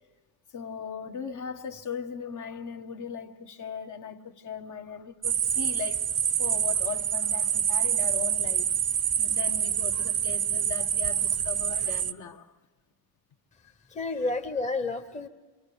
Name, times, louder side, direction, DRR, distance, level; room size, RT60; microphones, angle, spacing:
voice 1, 0.5-6.1 6.4-8.7 9.2-12.5, left 7 dB, 45° left, 1.6 m, -38 dB
sound 1, 5.2-12.1, right 9 dB, 40° right, 0.9 m, -27 dB
voice 2, 13.9-15.3, left 3 dB, 15° left, 1.3 m, -30 dB
26.5 x 24.5 x 7.0 m
cardioid pair, 135°, 41 cm